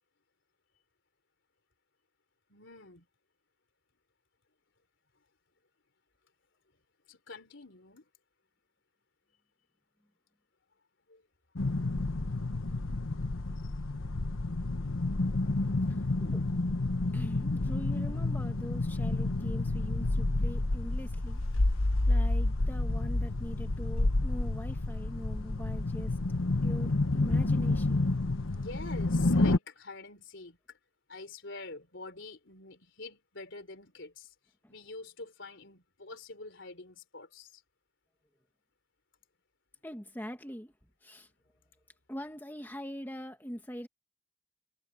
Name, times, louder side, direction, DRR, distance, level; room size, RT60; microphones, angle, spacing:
voice 1, 2.5-3.1 7.1-8.1 11.1-11.2 11.9-12.4 13.1-13.2 13.6-13.7 28.5-30.8 31.1-34.3 34.7-37.6, left 3 dB, 65° left, 3.8 m, -46 dB
sound 1, 11.6-29.6, left 2 dB, 85° left, 1.1 m, -29 dB
voice 2, 15.9-16.5 17.1-21.4 22.1-26.2 26.6-28.1 34.6-34.7 39.8-40.7 41.0-41.3 42.1-43.9, equal, 10° left, 1.7 m, -42 dB
head